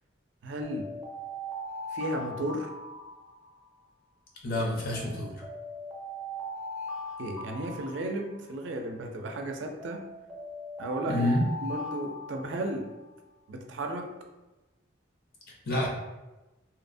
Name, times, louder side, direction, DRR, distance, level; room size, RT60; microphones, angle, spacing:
voice 1, 0.4-0.9 1.9-2.7 7.2-10.0 10.8-11.3 11.6-12.9 13.5-14.1, right 1 dB, 75° right, 3 dB, 0.4 m, -34 dB
sound 1, 0.6-3.8 4.9-8.7 9.8-13.0, equal, 5° right, 0.4 m, -40 dB
voice 2, 4.4-5.4 11.1-11.4 15.7-15.9, left 1 dB, 50° left, -2 dB, 0.6 m, -28 dB
2.7 x 2.0 x 2.5 m, 1.1 s
head